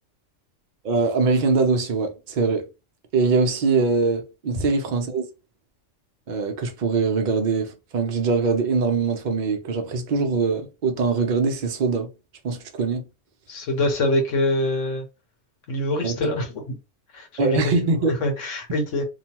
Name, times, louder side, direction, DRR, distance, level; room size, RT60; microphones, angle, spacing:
voice 1, 0.8-2.7 3.1-5.3 6.3-12.1 12.4-13.0 16.0-16.2 17.4-18.2, right 4 dB, 50° right, 0.6 m, -22 dB
voice 2, 13.5-15.1 15.7-16.7 17.1-17.7 18.2-19.0, left 1 dB, 70° left, 1.1 m, -24 dB
2.9 x 2.1 x 2.9 m
omnidirectional pair, 1.3 m